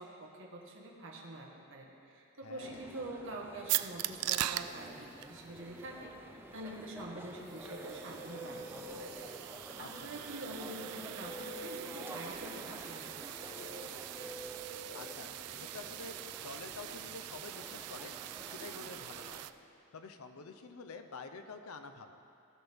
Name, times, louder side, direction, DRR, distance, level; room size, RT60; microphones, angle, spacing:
voice 1, 0.0-13.7, right 2 dB, 60° right, -1 dB, 1.5 m, -46 dB
voice 2, 2.4-2.9 9.8-9.9 10.1-10.5 14.9-18.1 18.4-19.4 19.9-22.2, left 4 dB, 70° left, 7 dB, 0.7 m, -48 dB
sound 1, 2.6-19.5, right 1 dB, 10° right, 0.6 m, -51 dB
sound 2, 3.7-19.5, right 14 dB, 90° right, 0.3 m, -42 dB
sound 3, 7.2-15.9, equal, 40° left, 1.1 m, -48 dB
18.0 x 6.2 x 3.5 m, 2.7 s
head